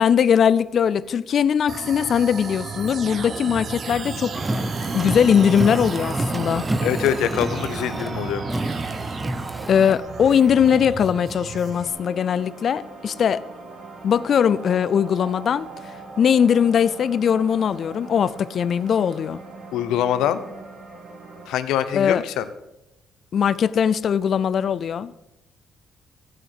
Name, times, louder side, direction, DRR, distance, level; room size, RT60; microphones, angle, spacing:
voice 1, 0.0-4.4 4.9-6.6 9.7-13.4 14.0-15.7 16.2-19.4 21.9-22.2 23.3-25.1, left 8 dB, 60° left, 0.4 m, -20 dB
sound 1, 1.7-11.9, right 5 dB, 50° right, 1.0 m, -34 dB
sound 2, 3.1-21.5, right 3 dB, 65° right, 2.7 m, -40 dB
Car, 4.3-10.0, right 1 dB, 15° right, 0.8 m, -29 dB
voice 2, 6.8-8.5 19.7-20.4 21.5-22.5, left 10 dB, 90° left, 0.7 m, -24 dB
15.0 x 6.4 x 6.1 m
cardioid pair, 90°, 0 cm